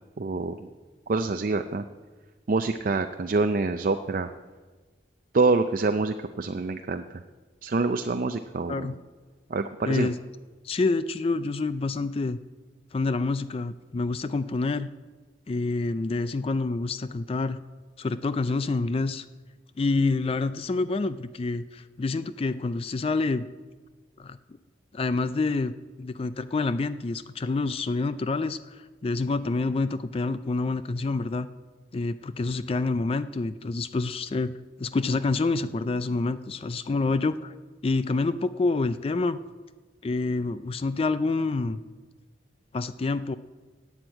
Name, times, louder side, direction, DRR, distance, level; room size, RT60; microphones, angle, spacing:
voice 1, 0.2-0.6 1.1-1.8 2.5-4.3 5.3-7.2 7.6-9.0 9.5-10.1, right 3 dB, 50° right, 7 dB, 0.5 m, -26 dB
voice 2, 9.9-10.2 10.6-12.4 12.9-14.9 15.5-17.6 18.0-19.3 19.8-23.5 24.2-24.4 24.9-25.7 26.0-31.5 31.9-37.5 37.8-39.4 40.0-41.8 42.7-43.4, left 3 dB, 30° left, 13 dB, 0.3 m, -27 dB
11.5 x 7.9 x 8.9 m, 1.4 s
head